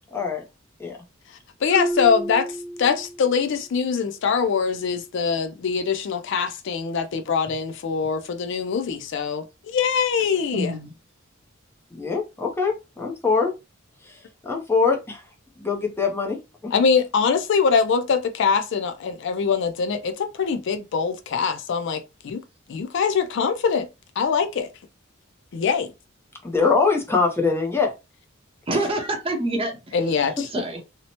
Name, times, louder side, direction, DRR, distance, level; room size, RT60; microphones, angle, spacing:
voice 1, 0.1-0.4 0.8-1.0 11.9-13.5 14.0-15.2 15.6-16.8 26.4-27.9 28.7-28.8, left 4 dB, 10° left, 0.5 m, -23 dB
voice 2, 1.6-10.7 16.7-22.4 22.7-23.9 24.2-24.7 25.5-25.9 29.9-30.5, left 6 dB, 65° left, 0.4 m, -23 dB
Marimba xylophone, 1.7-3.4, equal, 45° left, 0.9 m, -30 dB
voice 3, 10.5-10.9 28.7-30.8, right 2 dB, 30° right, 0.6 m, -27 dB
2.8 x 2.0 x 2.8 m
head